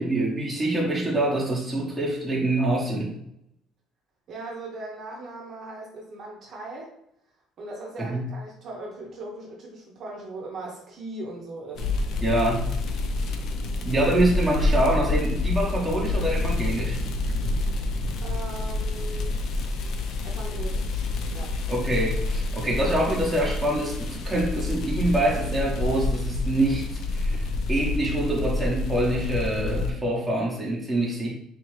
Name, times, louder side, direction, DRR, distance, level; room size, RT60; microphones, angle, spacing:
voice 1, 0.0-3.1 8.0-8.2 12.2-12.7 13.8-17.0 21.7-27.4 27.7-31.3, right 1 dB, 5° right, -5 dB, 1.0 m, -25 dB
voice 2, 4.3-6.9 7.6-12.2 18.2-19.4 20.2-21.1 21.3-21.5, right 2 dB, 40° right, -2 dB, 0.8 m, -39 dB
sound 1, 11.8-29.9, left 2 dB, 50° left, 0.4 m, -28 dB
3.7 x 2.8 x 3.2 m, 0.77 s
cardioid pair, 155°, 0 cm